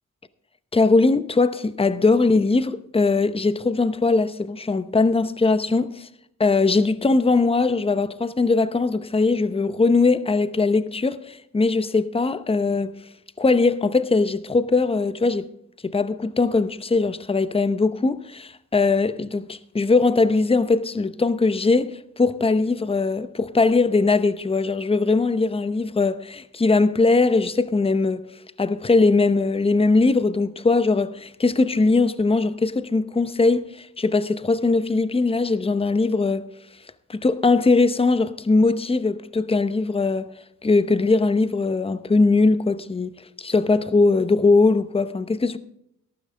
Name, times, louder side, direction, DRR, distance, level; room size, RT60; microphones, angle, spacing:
voice 1, 0.7-6.1 6.4-12.9 13.4-15.5 15.8-28.2 28.6-36.4 37.1-40.3 40.6-43.1 43.4-45.6, left 3 dB, 15° left, 0.7 m, -20 dB
13.5 x 12.0 x 3.3 m
cardioid pair, 85°, 34 cm